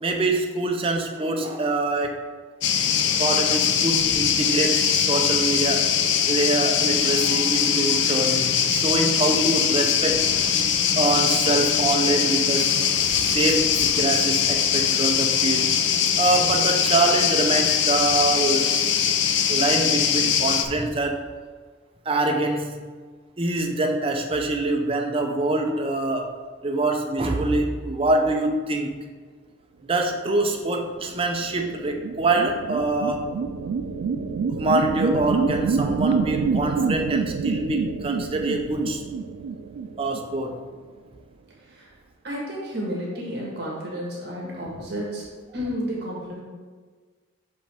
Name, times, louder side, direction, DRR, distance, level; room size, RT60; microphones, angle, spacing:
voice 1, 0.0-2.3 3.2-5.9 6.3-10.2 11.0-15.7 16.2-18.7 19.5-21.3 22.1-22.8 23.4-26.3 26.6-28.9 29.8-33.3 34.6-39.0 40.0-40.6, right 2 dB, 30° right, 3 dB, 0.5 m, -25 dB
sound 1, 2.6-20.6, left 8 dB, 70° left, 0.5 m, -22 dB
sound 2, 30.9-40.7, right 5 dB, 90° right, 0.3 m, -27 dB
voice 2, 41.6-41.9 42.2-45.3 45.5-46.4, equal, 60° right, -4 dB, 1.5 m, -31 dB
5.6 x 5.3 x 3.4 m, 1.5 s
head